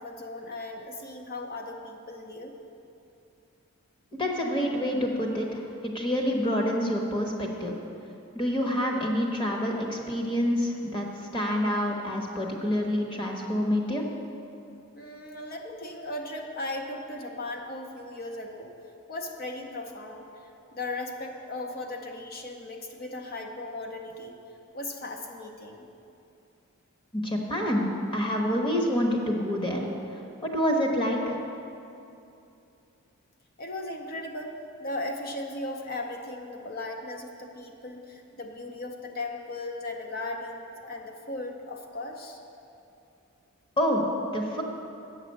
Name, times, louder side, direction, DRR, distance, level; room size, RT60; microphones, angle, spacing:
voice 1, 0.0-2.6 14.9-18.7 19.1-20.3 20.7-24.3 24.7-25.9 33.6-42.4, left 2 dB, 45° left, 3 dB, 0.6 m, -37 dB
voice 2, 4.2-7.7 8.3-11.1 11.3-14.0 27.1-27.9 28.1-29.9 30.4-31.4 43.8-44.1 44.3-44.6, equal, 25° left, 0 dB, 1.0 m, -27 dB
8.4 x 6.6 x 6.4 m, 2.7 s
head